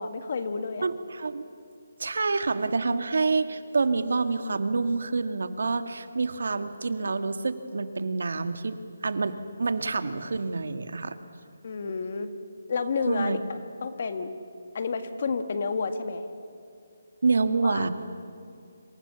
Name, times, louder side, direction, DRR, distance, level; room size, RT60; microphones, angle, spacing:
voice 1, 0.0-0.9 11.6-12.3 12.7-14.3 14.7-16.2 17.6-17.9, left 4 dB, 40° left, 9 dB, 1.8 m, -30 dB
voice 2, 0.8-1.4 2.0-11.2 13.1-13.4 17.2-17.9, right 4 dB, 70° right, 10 dB, 1.9 m, -27 dB
28.5 x 26.5 x 7.1 m, 2.4 s
hypercardioid pair, 175°, 0 cm